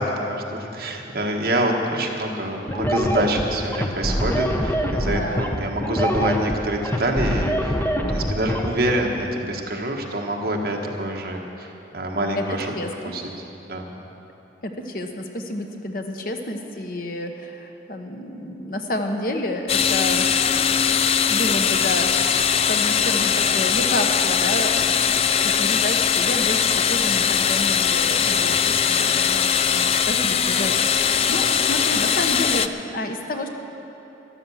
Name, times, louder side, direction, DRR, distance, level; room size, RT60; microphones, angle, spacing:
voice 1, 0.0-7.8 8.1-12.7 13.1-13.2 13.7-13.8 28.2-28.6, right 1 dB, 55° right, 1 dB, 1.5 m, -26 dB
sound 1, 2.7-8.7, equal, 10° left, 0.7 m, -24 dB
voice 2, 5.0-5.4 12.4-12.5 12.7-13.1 14.6-20.3 21.3-22.3 22.7-33.5, left 1 dB, 50° left, 4 dB, 1.0 m, -30 dB
sound 2, 19.7-32.7, left 7 dB, 30° left, 0.3 m, -20 dB
13.0 x 11.0 x 7.1 m, 3.0 s
head